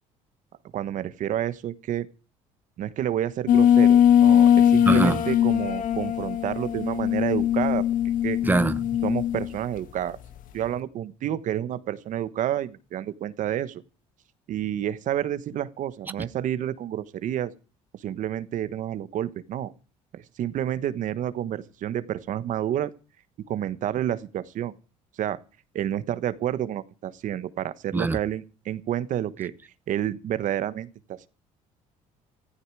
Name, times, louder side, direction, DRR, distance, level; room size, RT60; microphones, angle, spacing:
voice 1, 0.7-2.1 2.8-7.9 8.2-8.4 9.0-10.2 10.5-13.8 14.5-17.5 18.0-19.7 20.1-22.9 23.5-24.7 25.2-25.4 25.7-29.5 29.9-31.3, right 11 dB, 60° right, 1.3 m, -29 dB
sound 1, 3.5-9.5, left 10 dB, 65° left, 1.6 m, -20 dB
voice 2, 4.9-5.2 8.4-8.8 27.9-28.2, right 2 dB, 15° right, 1.0 m, -22 dB
17.0 x 14.5 x 4.8 m
supercardioid pair, 95°, 15 cm